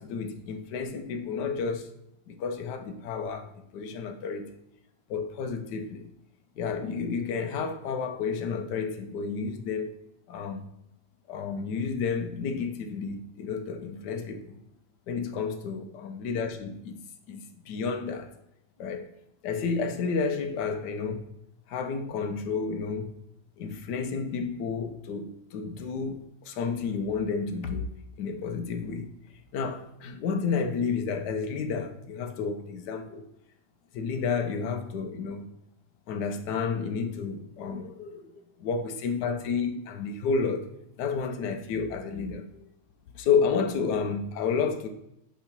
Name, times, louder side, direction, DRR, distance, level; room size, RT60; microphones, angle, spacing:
voice 1, 0.0-1.9 2.3-4.5 5.1-6.1 6.6-9.9 10.3-10.7 11.3-14.6 15.1-17.0 17.3-18.3 18.8-19.1 19.4-21.3 21.7-23.1 23.6-27.9 28.2-29.1 29.5-33.3 33.9-35.5 36.1-40.7 41.0-42.7 43.1-44.9, left 5 dB, 65° left, 1.2 m, -31 dB
6.8 x 3.2 x 5.8 m
omnidirectional pair, 2.2 m